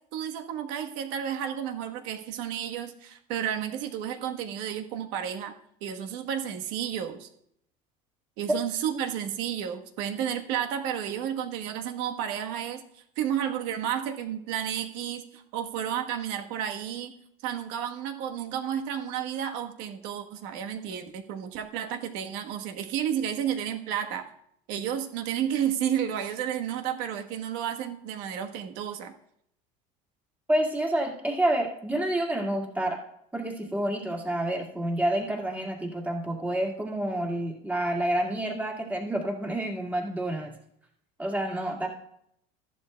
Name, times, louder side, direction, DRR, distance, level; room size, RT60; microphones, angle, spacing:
voice 1, 0.1-5.5 5.8-7.3 8.4-17.1 17.4-24.3 24.7-29.1, right 9 dB, 75° right, 5 dB, 1.3 m, -32 dB
voice 2, 30.5-33.0 33.3-40.5 41.2-41.9, right 1 dB, 10° right, -1 dB, 2.0 m, -28 dB
14.5 x 11.5 x 2.3 m, 0.71 s
cardioid pair, 145°, 17 cm